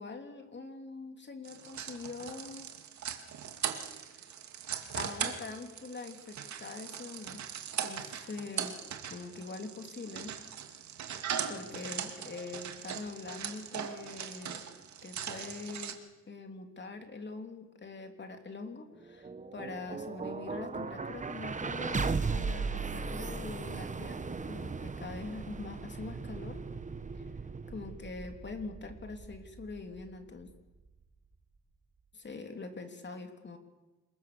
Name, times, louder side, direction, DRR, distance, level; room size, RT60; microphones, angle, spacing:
voice 1, 0.0-2.7 4.1-4.2 4.9-7.4 7.8-8.8 9.1-10.3 11.5-14.6 15.0-16.0 16.3-26.6 27.7-30.5 32.1-33.6, left 3 dB, 35° left, 5 dB, 3.3 m, -43 dB
sound 1, 1.4-15.9, right 8 dB, 65° right, 2.5 m, -40 dB
sound 2, 19.0-31.0, right 4 dB, 25° right, 1.3 m, -37 dB
27.5 x 22.0 x 7.0 m, 1.1 s
cardioid pair, 90°, 30 cm